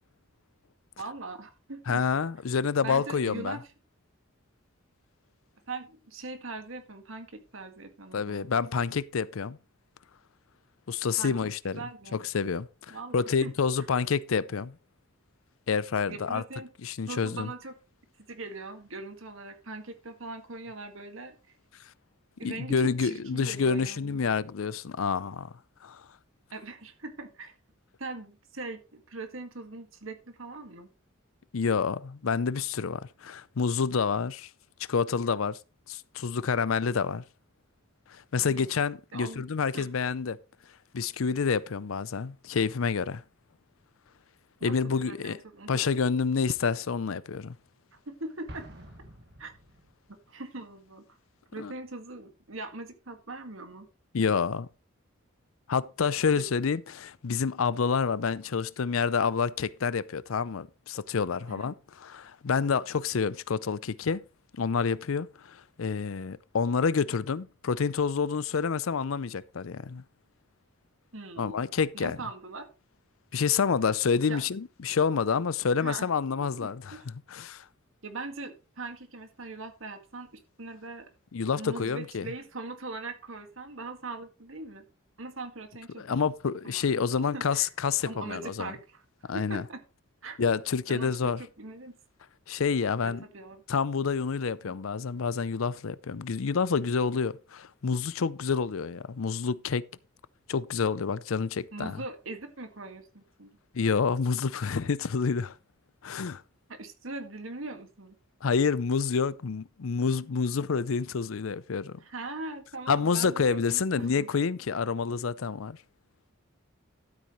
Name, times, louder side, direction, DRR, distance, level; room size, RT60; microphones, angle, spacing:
voice 1, 1.0-2.0 2.8-3.6 5.7-8.5 11.2-11.5 11.8-12.2 12.9-13.5 13.8-13.9 16.1-16.7 17.1-17.7 18.3-21.4 22.4-24.2 26.5-27.5 28.0-30.9 38.4-38.8 39.1-39.4 39.7-39.9 44.6-46.0 48.1-48.7 49.4-49.5 50.3-51.0 51.5-53.9 56.4-56.5 61.5-61.7 71.1-71.6 71.9-72.7 74.3-74.4 75.8-76.1 76.6-77.1 78.0-81.1 81.6-84.8 85.2-86.3 86.6-86.9 87.3-87.7 88.1-89.0 89.3-89.8 90.2-90.4 90.9-91.9 93.0-93.6 94.6-94.7 101.7-103.6 106.7-108.2 112.0-114.3, right 3 dB, 70° right, 1.9 m, -41 dB
voice 2, 1.9-3.6 8.1-9.6 10.9-11.8 12.1-14.8 15.7-16.4 16.8-17.5 22.4-25.5 25.8-26.0 31.5-34.5 34.9-35.6 35.9-37.2 38.1-40.4 40.9-43.2 44.6-45.4 45.7-47.5 51.6-51.7 54.1-54.7 55.7-64.2 64.5-70.0 71.4-72.2 73.3-77.0 77.3-77.6 81.3-82.3 86.0-88.7 89.3-89.6 90.4-91.4 92.5-93.2 93.7-99.8 100.5-102.0 103.7-105.5 106.0-106.4 108.4-112.0 112.9-115.8, left 5 dB, 80° left, 0.5 m, -28 dB
Explosion, 48.5-50.2, equal, 55° right, 1.9 m, -48 dB
12.5 x 8.5 x 3.1 m
head